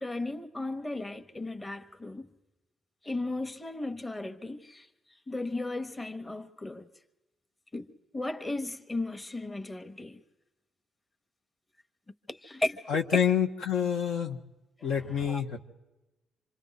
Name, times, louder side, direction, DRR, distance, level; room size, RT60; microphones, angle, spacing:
voice 1, 0.0-2.3 3.0-4.8 5.3-6.9 7.7-7.9 8.1-10.2 12.3-12.8 14.8-14.9 15.2-15.4, left 2 dB, 20° left, 1.2 m, -35 dB
voice 2, 12.9-14.4 14.8-15.6, left 8 dB, 75° left, 1.2 m, -27 dB
27.0 x 26.0 x 4.1 m
cardioid pair, 90°, 0 cm